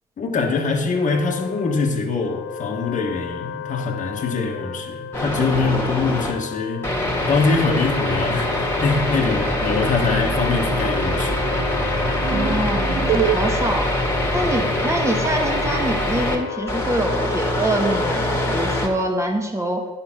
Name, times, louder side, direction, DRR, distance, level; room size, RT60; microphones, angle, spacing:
voice 1, 0.2-6.9 7.3-11.5, left 4 dB, 50° left, 1 dB, 1.5 m, -23 dB
Wind instrument woodwind instrument, 0.9-19.0, left 9 dB, 80° left, 0.5 m, -33 dB
sound 1, 5.1-6.3 6.8-16.3 16.7-18.9, left 1 dB, 15° left, 2.1 m, -23 dB
sound 2, 8.3-13.4, right 13 dB, 60° right, 0.5 m, -30 dB
voice 2, 12.3-13.9 14.3-19.9, right 1 dB, 15° right, 2 dB, 1.9 m, -25 dB
9.6 x 4.3 x 6.0 m, 1.2 s
supercardioid pair, 65°, 17 cm